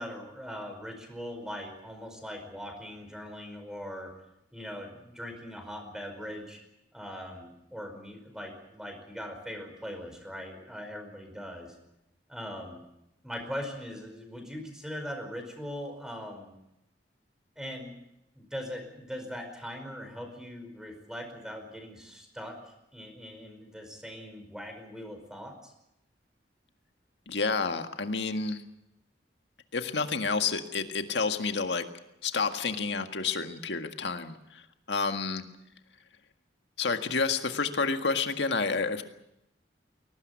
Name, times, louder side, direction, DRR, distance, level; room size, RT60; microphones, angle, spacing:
voice 1, 0.0-4.1 4.5-6.6 6.9-11.7 12.3-12.8 13.2-16.5 17.6-17.9 18.3-22.6 22.9-25.7, equal, 5° right, 5 dB, 5.0 m, -40 dB
voice 2, 27.3-28.6 29.7-31.8 32.2-34.6 34.9-35.4 36.8-39.0, left 4 dB, 75° left, 7 dB, 1.8 m, -29 dB
22.5 x 18.5 x 8.4 m, 0.83 s
head